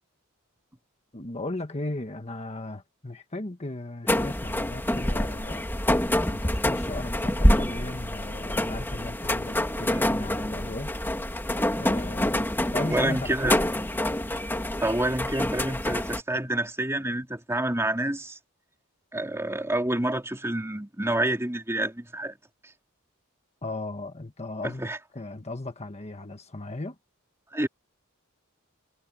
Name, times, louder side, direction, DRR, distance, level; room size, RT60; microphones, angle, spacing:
voice 1, 1.1-5.6 6.3-10.9 11.8-12.5 12.7-13.8 23.6-24.8 25.1-26.9, left 2 dB, 30° left, 1.5 m, -36 dB
sound 1, 4.1-16.2, left 1 dB, 10° left, 2.0 m, -26 dB
voice 2, 12.8-13.6 14.8-18.4 19.1-22.3 24.6-25.0 27.5-27.7, right 1 dB, 10° right, 3.0 m, -28 dB
head